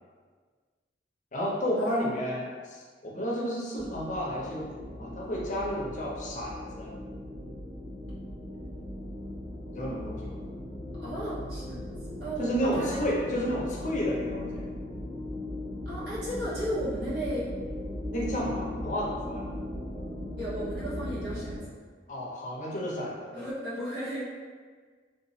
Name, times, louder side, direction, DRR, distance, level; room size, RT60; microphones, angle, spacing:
voice 1, 1.3-6.9 9.7-10.3 12.4-14.7 18.1-19.4 22.1-23.4, equal, 45° left, -4 dB, 0.7 m, -32 dB
sound 1, 3.8-21.6, left 1 dB, 25° right, 1.5 m, -38 dB
voice 2, 11.0-11.8 12.2-13.0 13.3-13.4 15.8-17.4 20.4-21.6 23.3-24.3, right 1 dB, 70° right, -9 dB, 1.3 m, -34 dB
3.7 x 2.8 x 2.7 m, 1.5 s
head